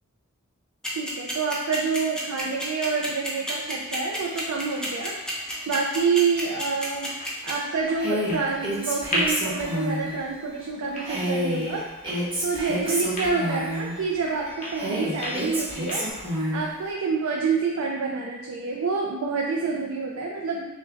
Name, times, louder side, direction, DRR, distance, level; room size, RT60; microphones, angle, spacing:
sound 1, 0.8-7.5, equal, 5° left, 0.7 m, -31 dB
voice 1, 0.9-7.1 7.4-11.9 12.4-16.1 16.5-20.7, right 5 dB, 85° right, -2 dB, 0.4 m, -27 dB
sound 2, 3.6-16.1, equal, 35° left, 1.1 m, -37 dB
Female speech woman speaking, 8.0-10.1 11.0-13.9 14.7-16.6, equal, 25° right, 1.0 m, -28 dB
6.2 x 2.2 x 2.5 m, 1.1 s
head